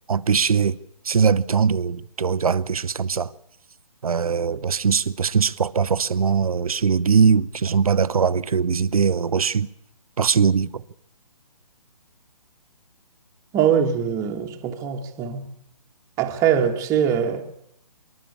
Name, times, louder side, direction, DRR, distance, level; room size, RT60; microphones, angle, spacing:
voice 1, 0.1-0.8 1.0-3.3 4.0-9.7 10.2-10.8, right 6 dB, 65° right, 0.7 m, -21 dB
voice 2, 13.5-15.4 16.2-17.4, right 8 dB, 15° right, 1.4 m, -22 dB
26.5 x 12.0 x 8.5 m
figure-of-eight pair, 140°, 20 cm